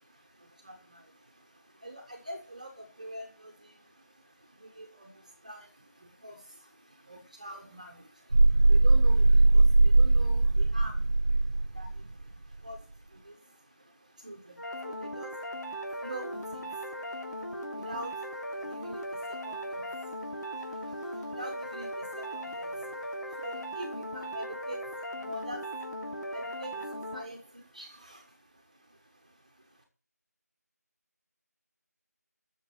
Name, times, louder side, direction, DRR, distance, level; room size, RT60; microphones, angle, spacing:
voice 1, 0.0-29.5, right 1 dB, 25° right, 3 dB, 1.4 m, -46 dB
sound 1, 8.3-12.0, right 2 dB, 55° right, 0.5 m, -20 dB
sound 2, 14.6-27.2, equal, 85° left, 2.9 m, -38 dB
9.0 x 6.9 x 8.7 m, 0.39 s
figure-of-eight pair, 175°, 9 cm